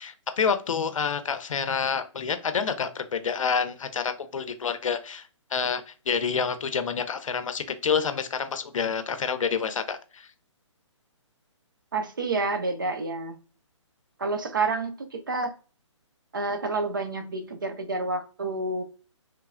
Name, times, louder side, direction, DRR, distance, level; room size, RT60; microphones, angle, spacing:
voice 1, 0.0-10.3, left 6 dB, 90° left, 10 dB, 0.5 m, -28 dB
voice 2, 11.9-13.4 14.2-15.5 16.3-18.8, right 3 dB, 40° right, 8 dB, 0.4 m, -29 dB
3.1 x 2.1 x 2.3 m, 0.36 s
hypercardioid pair, 180°, 16 cm